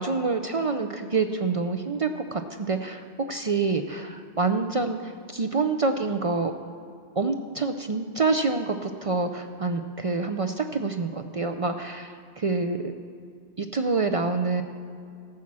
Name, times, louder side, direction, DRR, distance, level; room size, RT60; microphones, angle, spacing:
voice 1, 0.0-3.0 3.3-6.5 7.2-12.9 13.6-14.6, right 4 dB, 50° right, 7 dB, 0.4 m, -27 dB
14.0 x 7.2 x 6.1 m, 2.3 s
omnidirectional pair, 1.1 m